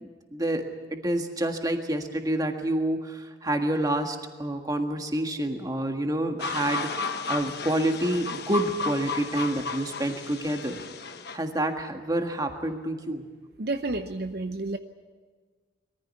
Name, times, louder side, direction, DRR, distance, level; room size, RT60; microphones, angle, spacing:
voice 1, 0.0-10.8 11.3-13.3, right 1 dB, 20° right, 4 dB, 1.6 m, -28 dB
sound 1, 6.4-11.4, left 4 dB, 55° left, 1.2 m, -33 dB
voice 2, 13.6-14.8, right 2 dB, 55° right, 7 dB, 0.8 m, -30 dB
22.5 x 14.5 x 9.6 m, 1.5 s
head